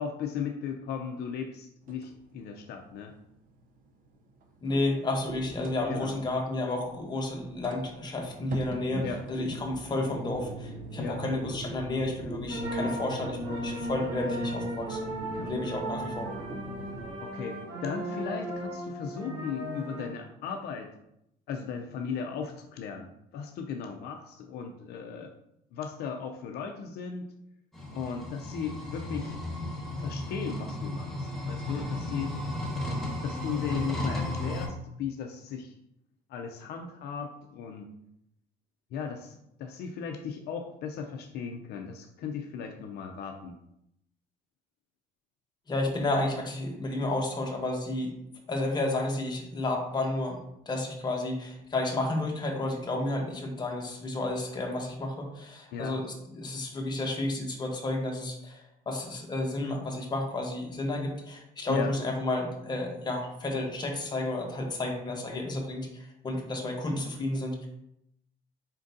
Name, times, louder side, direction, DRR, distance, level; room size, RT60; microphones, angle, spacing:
voice 1, 0.0-3.1 5.9-6.2 9.0-9.2 11.0-11.2 15.3-15.5 17.2-20.9 21.5-25.3 25.7-27.3 27.9-29.3 30.0-32.3 33.2-35.7 36.3-37.9 38.9-43.6 55.7-56.0 61.7-61.9, left 6 dB, 70° left, 3 dB, 0.5 m, -37 dB
sound 1, 1.8-17.1, right 2 dB, 55° right, 0.6 m, -42 dB
voice 2, 4.6-15.1 15.4-16.3 45.7-48.1 48.5-50.4 50.7-67.7, left 2 dB, 25° left, 1 dB, 0.9 m, -31 dB
sound 2, 12.5-20.1, equal, 85° right, 1.5 m, -36 dB
sound 3, 27.7-34.7, left 1 dB, ahead, 1.2 m, -34 dB
4.4 x 3.7 x 2.6 m, 0.79 s
cardioid pair, 110°, 17 cm